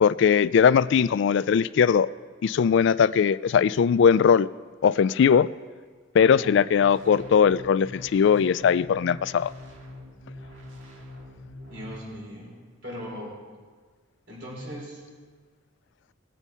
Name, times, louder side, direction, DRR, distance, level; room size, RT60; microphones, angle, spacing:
voice 1, 0.0-2.1 2.4-4.5 4.8-5.5 6.1-9.5, left 7 dB, 65° left, 17 dB, 0.3 m, -20 dB
voice 2, 6.2-6.6 11.7-12.5 12.8-13.4 14.3-15.0, equal, 65° right, -4 dB, 4.4 m, -39 dB
sound 1, 6.7-12.0, left 1 dB, 85° right, 2.1 m, -44 dB
19.5 x 7.2 x 5.5 m, 1.5 s
head